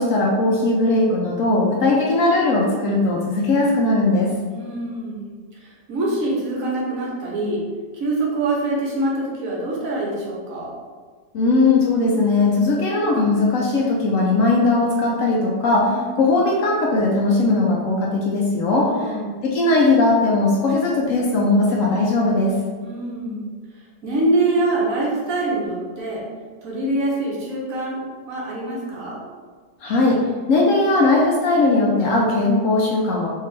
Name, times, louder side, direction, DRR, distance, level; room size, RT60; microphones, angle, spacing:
voice 1, 0.0-4.3 11.3-19.2 19.4-22.6 29.8-30.2 30.5-33.3, left 2 dB, 75° left, -2 dB, 0.7 m, -19 dB
voice 2, 4.5-7.6 7.9-10.8 15.8-16.3 18.8-19.5 22.8-23.4 24.0-26.2 26.6-29.2, right 2 dB, 60° right, -5 dB, 1.1 m, -25 dB
3.6 x 2.7 x 3.2 m, 1.5 s
omnidirectional pair, 1.9 m